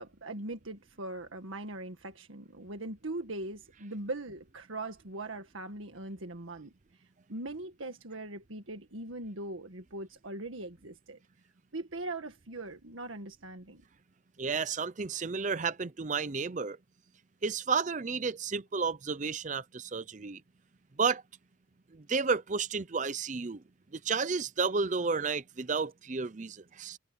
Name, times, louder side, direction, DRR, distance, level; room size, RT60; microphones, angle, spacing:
voice 1, 0.0-6.7 7.3-11.2 11.7-13.8, right 2 dB, 85° right, 1.8 m, -40 dB
voice 2, 14.4-16.8 17.4-20.4 21.0-21.2 22.1-23.6 24.0-27.0, right 5 dB, 40° right, 0.6 m, -31 dB
head